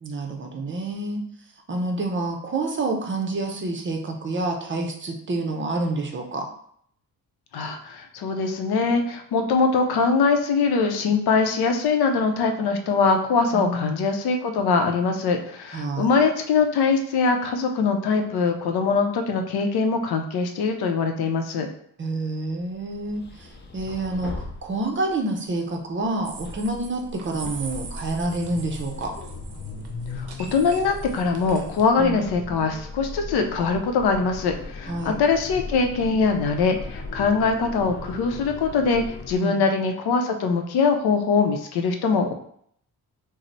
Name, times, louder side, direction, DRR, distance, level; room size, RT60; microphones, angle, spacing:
voice 1, 0.0-1.3 1.7-6.4 13.5-13.9 15.7-16.2 22.0-29.1 32.0-32.4 34.9-35.2 39.3-39.7, right 2 dB, 30° right, 2 dB, 0.5 m, -28 dB
voice 2, 7.5-21.7 30.2-42.3, left 4 dB, 80° left, 5 dB, 0.6 m, -22 dB
sound 1, 22.6-25.3 26.0-39.4, left 3 dB, 30° left, 0.4 m, -38 dB
sound 2, 26.2-31.9, right 4 dB, 85° right, 0.6 m, -41 dB
3.1 x 2.0 x 3.9 m, 0.65 s
cardioid pair, 105°, 38 cm